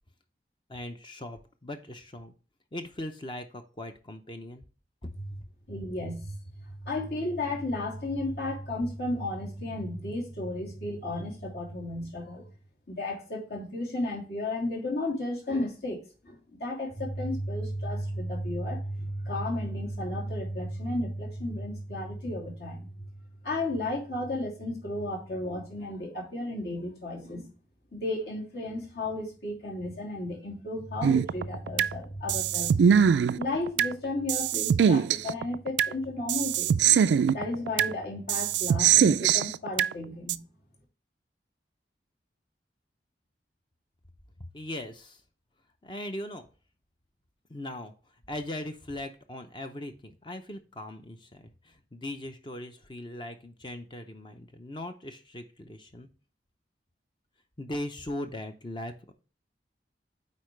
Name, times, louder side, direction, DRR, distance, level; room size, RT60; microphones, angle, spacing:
voice 1, 0.7-2.3 2.7-4.6 5.0-5.1 44.5-45.2 45.8-46.5 47.5-47.9 48.3-56.1 57.6-59.1, left 1 dB, 25° left, 6 dB, 0.6 m, -39 dB
voice 2, 5.7-6.3 6.8-12.4 12.9-22.9 23.4-27.5 27.9-32.8 33.3-36.7 37.3-40.4, left 1 dB, 65° left, -2 dB, 2.8 m, -33 dB
sound 1, 31.0-31.9 32.3-33.9 34.3-35.9 36.3-37.9 38.3-39.9 40.3-40.4, right 8 dB, 85° right, 0.3 m, -22 dB
8.4 x 4.5 x 3.2 m, 0.37 s
head